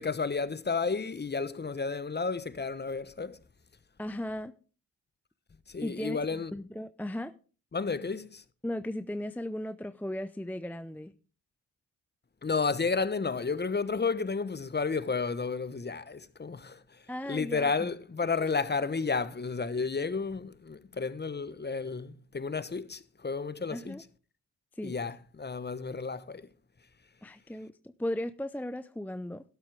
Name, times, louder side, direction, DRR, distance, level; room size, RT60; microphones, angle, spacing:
voice 1, 0.0-3.4 5.7-6.5 7.7-8.4 12.4-16.8 17.3-24.0 24.8-26.5, left 4 dB, 25° left, 1.0 m, -32 dB
voice 2, 4.0-4.5 5.8-7.3 8.6-11.1 17.1-17.9 18.4-18.5 23.7-24.0 24.8-25.0 27.2-29.4, left 1 dB, 5° left, 0.6 m, -36 dB
12.5 x 11.5 x 3.5 m
hypercardioid pair, 45°, 42 cm